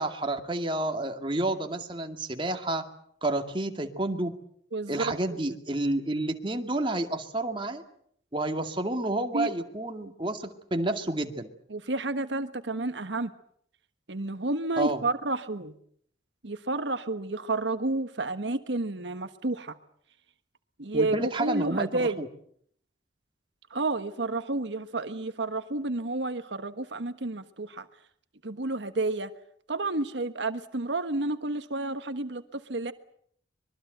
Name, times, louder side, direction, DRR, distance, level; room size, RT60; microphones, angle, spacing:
voice 1, 0.0-2.8 3.2-4.3 4.9-7.8 8.3-11.5 14.8-15.0 20.9-22.3, right 2 dB, 30° right, 5 dB, 2.3 m, -30 dB
voice 2, 4.7-5.1 5.5-5.6 9.3-9.5 11.7-13.3 14.1-15.7 16.4-19.8 20.8-22.2 23.7-27.9 28.4-29.3 29.7-32.9, right 2 dB, 85° right, 10 dB, 1.4 m, -30 dB
25.0 x 22.5 x 8.0 m, 0.65 s
head